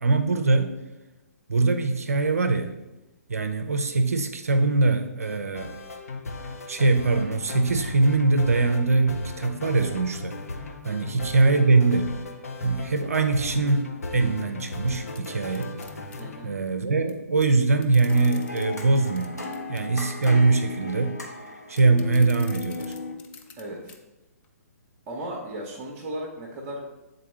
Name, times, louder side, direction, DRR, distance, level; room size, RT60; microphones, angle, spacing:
voice 1, 0.0-0.7 1.5-2.7 3.3-5.7 6.7-10.4 10.8-12.1 12.6-15.7 16.4-19.4 19.7-21.2 21.7-22.9, right 3 dB, 65° right, 7 dB, 0.5 m, -22 dB
sound 1, 5.2-16.5, left 2 dB, 65° left, 0.8 m, -36 dB
sound 2, 14.6-16.2 17.1-17.2 17.4-19.9 20.2-20.5 21.7-23.6 23.9-24.0 24.4-24.5, left 7 dB, 15° left, 0.3 m, -48 dB
voice 2, 16.2-16.5 23.6-23.9 25.1-26.8, right 1 dB, 25° right, -2 dB, 0.8 m, -36 dB
sound 3, 18.1-23.1, left 3 dB, 90° left, 1.1 m, -36 dB
7.5 x 3.9 x 3.2 m, 1.0 s
figure-of-eight pair, 125°, 9 cm